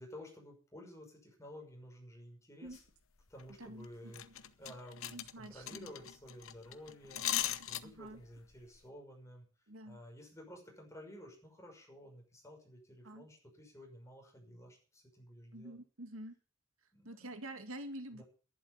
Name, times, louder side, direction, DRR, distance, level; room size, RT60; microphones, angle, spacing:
voice 1, 0.0-2.8 3.3-9.5 9.8-15.8 16.9-17.4 18.1-18.2, equal, 15° left, 1 dB, 6.0 m, -53 dB
sound 1, 2.7-2.8 3.2-3.5 3.8-3.9 4.1-8.2 8.5-8.8, left 11 dB, 75° left, 1.0 m, -39 dB
voice 2, 3.6-4.1 5.1-5.9 7.8-8.2 9.7-10.0 13.0-13.3 15.5-16.4 17.0-18.2, right 1 dB, 80° right, 8 dB, 2.0 m, -47 dB
11.5 x 11.0 x 7.2 m, 0.38 s
head